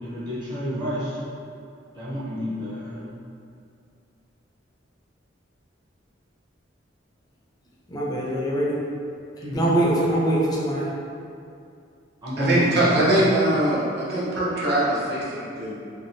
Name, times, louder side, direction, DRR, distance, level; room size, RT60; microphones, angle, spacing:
voice 1, 0.0-1.2 1.9-3.1 9.4-9.9 12.2-13.2, equal, 25° right, -8 dB, 0.7 m, -29 dB
voice 2, 7.9-8.8 9.5-10.9, right 1 dB, 20° left, -4 dB, 0.4 m, -23 dB
voice 3, 12.4-15.7, right 1 dB, 60° right, -7 dB, 0.8 m, -22 dB
3.3 x 2.3 x 2.7 m, 2.4 s
head